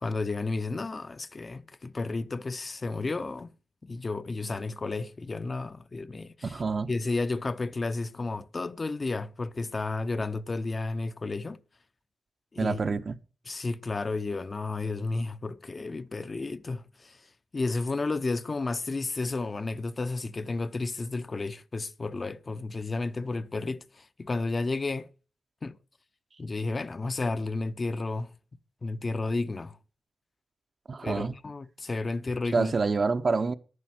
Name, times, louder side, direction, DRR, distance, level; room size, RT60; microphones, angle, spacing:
voice 1, 0.0-3.5 3.8-6.6 6.9-11.6 12.5-12.8 13.5-17.2 17.5-25.1 25.6-25.8 26.4-28.3 28.8-29.8 31.0-32.7, left 3 dB, 40° left, 0.7 m, -32 dB
voice 2, 6.4-6.9 12.6-13.2 30.9-31.4 32.5-33.5, right 4 dB, 50° right, 0.9 m, -27 dB
11.0 x 9.7 x 6.1 m
cardioid pair, 70°, 0 cm